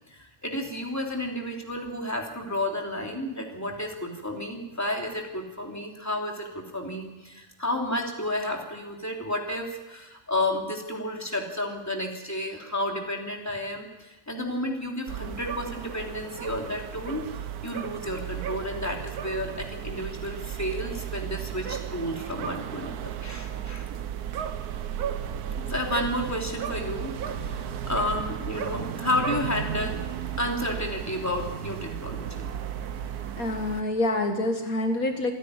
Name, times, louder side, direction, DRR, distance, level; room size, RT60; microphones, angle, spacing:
voice 1, 0.1-17.3 17.6-23.9 25.6-30.0 30.4-32.5, left 1 dB, 10° left, 0 dB, 3.1 m, -31 dB
sound 1, 15.1-33.8, right 9 dB, 80° right, 1.4 m, -34 dB
voice 2, 33.0-35.3, left 2 dB, 65° left, 4 dB, 2.1 m, -27 dB
28.0 x 10.0 x 9.8 m, 1.1 s
omnidirectional pair, 1.6 m